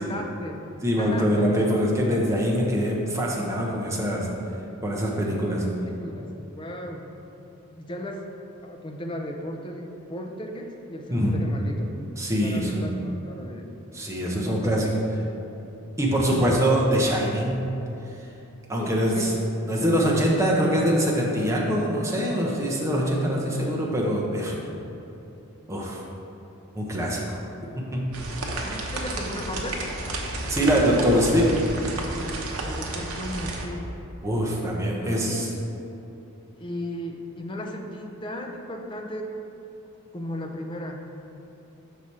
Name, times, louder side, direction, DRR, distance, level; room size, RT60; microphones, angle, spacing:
voice 1, 0.0-0.7 1.0-1.5 5.5-7.1 7.7-8.2 8.6-11.9 12.4-13.7 14.2-15.4 16.3-16.6 18.8-19.3 19.8-20.5 28.6-29.9 30.7-31.3 32.7-34.0 34.9-35.6 36.6-39.3 40.1-41.1, left 1 dB, 20° left, 2 dB, 0.4 m, -35 dB
voice 2, 0.8-4.3 4.8-5.6 11.1-11.4 12.2-12.9 13.9-14.9 16.0-17.7 18.7-19.3 19.6-24.6 25.7-26.0 26.7-27.2 27.9-28.0 30.5-31.5 34.2-35.4, equal, 15° right, -3 dB, 0.7 m, -23 dB
sound 1, 28.1-33.7, right 2 dB, 80° right, 0.7 m, -31 dB
6.0 x 4.9 x 4.1 m, 2.9 s
head